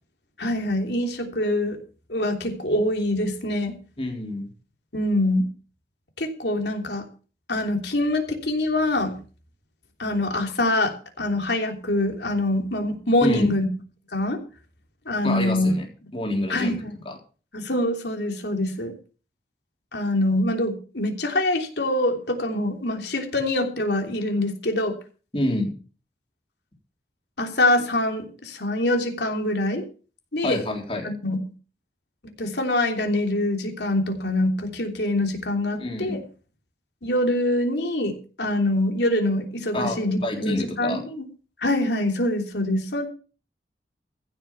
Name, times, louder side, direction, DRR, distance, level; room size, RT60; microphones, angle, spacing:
voice 1, 0.4-1.8 2.1-3.8 4.9-5.5 6.2-7.0 7.5-9.2 10.0-13.7 14.1-14.4 15.1-15.7 16.5-16.9 17.5-18.9 19.9-24.9 27.4-29.8 30.3-30.6 31.0-31.4 32.2-36.2 37.0-41.2 41.6-43.1, left 1 dB, 70° left, 4 dB, 3.1 m, -24 dB
voice 2, 4.0-4.4 13.2-13.6 15.2-15.9 16.1-17.2 25.3-25.8 30.4-31.1 35.8-36.2 39.7-41.0, left 1 dB, 30° left, 2 dB, 3.6 m, -27 dB
15.5 x 6.8 x 7.2 m, 0.38 s
head